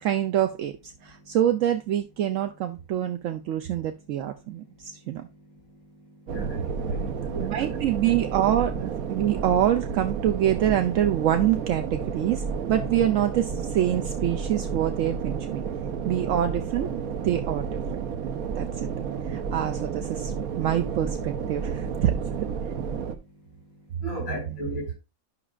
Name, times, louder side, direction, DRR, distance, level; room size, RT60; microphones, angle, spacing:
voice 1, 0.0-5.3 7.4-15.6 16.0-16.9 17.2-17.7 18.0-18.1 18.5-18.9 19.3-22.5 24.3-24.4, right 11 dB, 70° right, 0.9 m, -26 dB
voice 2, 6.3-7.9 24.0-25.0, equal, 80° left, 5.2 m, -35 dB
sound 1, 6.3-23.1, right 6 dB, 85° right, 1.2 m, -31 dB
11.0 x 6.0 x 2.4 m
omnidirectional pair, 1.5 m